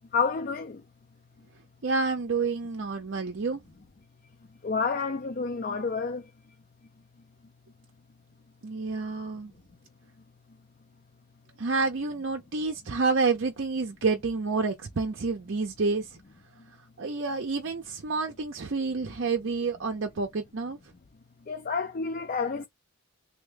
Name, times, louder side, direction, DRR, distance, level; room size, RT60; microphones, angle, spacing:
voice 1, 0.1-0.8 4.6-6.2 21.5-22.7, left 5 dB, 40° left, 0.4 m, -29 dB
voice 2, 1.8-3.6 8.6-9.5 11.6-16.1 17.0-20.8, right 4 dB, 55° right, 0.6 m, -29 dB
3.4 x 2.2 x 3.3 m
head